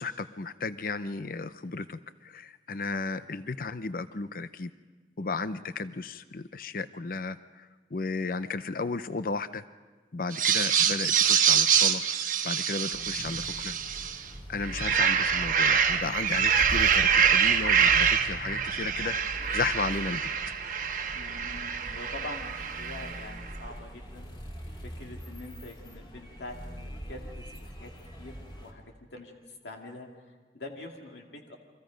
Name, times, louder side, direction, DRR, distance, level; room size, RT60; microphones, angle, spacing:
voice 1, 0.0-4.7 5.2-7.4 7.9-9.6 10.1-12.0 12.4-13.7 14.5-20.3, left 3 dB, 50° left, 13 dB, 0.6 m, -34 dB
sound 1, 10.3-14.2 14.6-23.3, right 7 dB, 50° right, 1.4 m, -25 dB
sound 2, 12.9-28.7, equal, 25° left, 2.8 m, -42 dB
voice 2, 21.1-24.3 24.8-27.9 28.2-31.6, left 2 dB, 80° left, 1 dB, 2.3 m, -45 dB
30.0 x 24.5 x 5.2 m, 1.3 s
head